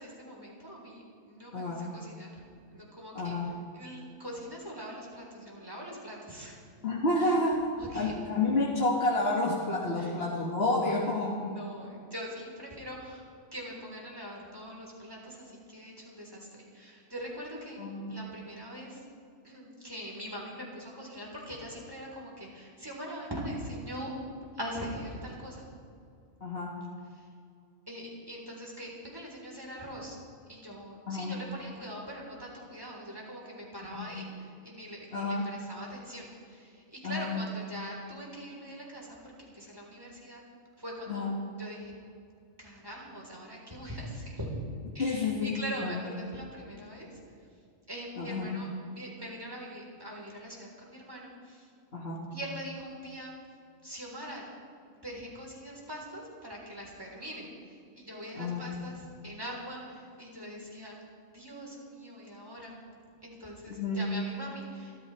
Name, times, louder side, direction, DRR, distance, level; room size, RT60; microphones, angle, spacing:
voice 1, 0.0-2.4 2.7-6.6 7.2-7.4 7.8-8.1 10.0-10.1 11.3-13.3 13.5-17.8 18.1-19.0 19.4-25.6 27.1-27.3 27.9-30.2 30.5-40.4 40.8-41.3 41.6-41.9 42.6-44.5 44.9-47.2 47.9-51.7 52.3-53.3 53.8-54.5 54.9-61.0 61.3-62.8 63.2-65.0, equal, 15° right, -3 dB, 3.9 m, -42 dB
voice 2, 1.5-1.9 3.1-3.5 6.8-7.6 7.9-11.5 17.8-18.1 26.4-26.8 31.1-31.3 33.9-34.1 35.1-35.4 37.0-37.3 41.1-41.3 45.0-46.0 48.2-48.6 51.9-52.3 58.4-58.6 63.7-64.1, left 2 dB, 50° left, -4 dB, 2.0 m, -30 dB
28.5 x 13.5 x 3.3 m, 2.3 s
omnidirectional pair, 1.3 m